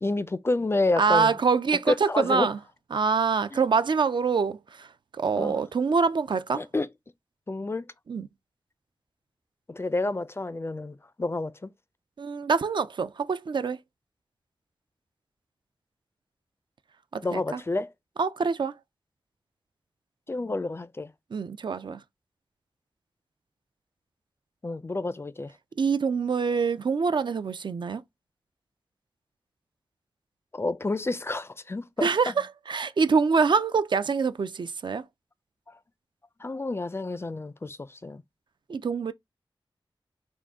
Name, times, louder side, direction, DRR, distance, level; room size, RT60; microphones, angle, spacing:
voice 1, 0.0-1.3 1.9-2.5 3.5-3.6 5.4-5.5 6.5-6.9 7.5-7.9 9.7-11.7 17.2-17.9 20.3-21.1 24.6-25.5 30.5-32.3 35.7-35.8 36.4-38.2, left 2 dB, 30° left, 0.3 m, -29 dB
voice 2, 1.0-2.6 2.9-6.6 8.1-8.3 12.2-13.8 17.1-17.6 18.2-18.8 21.3-22.0 25.8-28.0 32.0-35.0 38.7-39.1, right 5 dB, 60° right, 0.4 m, -25 dB
3.7 x 2.4 x 3.4 m
wide cardioid pair, 75°, 9 cm